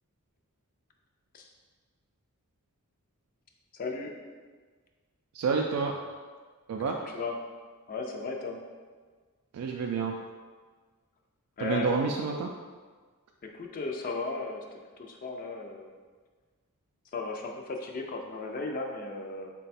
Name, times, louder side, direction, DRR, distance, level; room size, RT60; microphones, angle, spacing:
voice 1, 3.7-4.1 6.9-7.4 7.9-8.6 11.6-12.2 13.4-14.6 15.0-15.9 17.1-19.5, left 3 dB, 40° left, 2 dB, 0.3 m, -35 dB
voice 2, 5.3-6.0 6.7-7.0 9.5-10.2 11.6-12.5, right 5 dB, 85° right, 3 dB, 0.3 m, -29 dB
3.8 x 2.2 x 4.1 m, 1.5 s
head